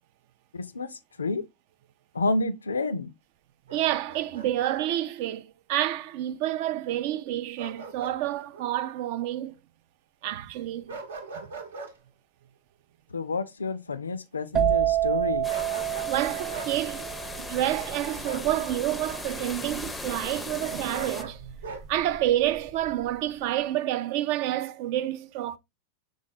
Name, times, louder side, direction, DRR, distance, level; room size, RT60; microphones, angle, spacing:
voice 1, 0.5-1.5 2.1-3.1 13.1-15.5, left 3 dB, 75° left, 0.4 m, -29 dB
voice 2, 3.7-5.4 5.7-9.5 10.2-11.0 11.3-11.5 16.1-25.6, right 13 dB, 45° right, 0.4 m, -29 dB
Bark, 3.7-4.8 7.6-8.2 8.5-8.7 10.9-11.9 15.5-16.2 16.5-16.7 18.2-18.5 20.9-21.8, right 4 dB, 65° right, 0.8 m, -40 dB
sound 1, 14.5-22.1 22.4-22.9, right 11 dB, 25° right, 0.7 m, -29 dB
sound 2, 15.4-21.2, left 2 dB, 10° left, 0.5 m, -38 dB
5.0 x 3.6 x 2.5 m
figure-of-eight pair, 90°, 0 cm